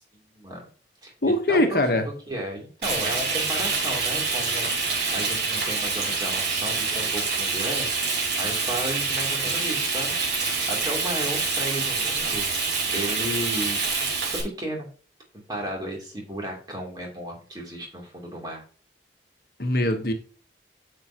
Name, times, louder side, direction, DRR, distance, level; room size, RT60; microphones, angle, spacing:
voice 1, 0.3-0.7 1.0-1.1 1.5-12.5 12.9-13.8 14.2-14.9 15.3-18.6, right 1 dB, 25° right, 0 dB, 2.9 m, -34 dB
voice 2, 1.2-2.1 19.6-20.1, left 1 dB, 55° left, 6 dB, 1.1 m, -22 dB
Frying (food), 2.8-14.4, right 4 dB, 80° right, 4.4 m, -26 dB
9.4 x 6.8 x 2.9 m, 0.39 s
head